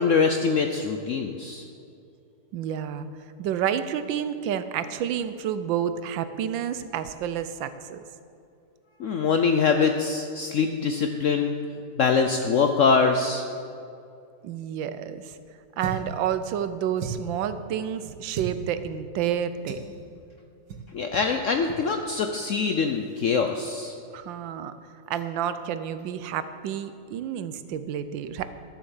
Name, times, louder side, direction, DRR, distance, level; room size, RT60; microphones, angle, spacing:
voice 1, 0.0-1.7 9.0-11.5 12.0-13.5 20.9-23.9, left 5 dB, 70° left, 5 dB, 0.7 m, -23 dB
voice 2, 2.5-3.1 3.4-8.0 14.4-15.4 15.8-19.9 24.1-24.7 25.1-28.5, right 9 dB, 85° right, 12 dB, 1.4 m, -30 dB
sound 1, 15.8-16.2 17.0-17.4 18.3-18.6 19.7-19.9 20.7-20.9 21.1-21.3 21.6-21.8, right 6 dB, 70° right, 1.7 m, -34 dB
12.5 x 7.3 x 7.2 m, 2.5 s
omnidirectional pair, 2.0 m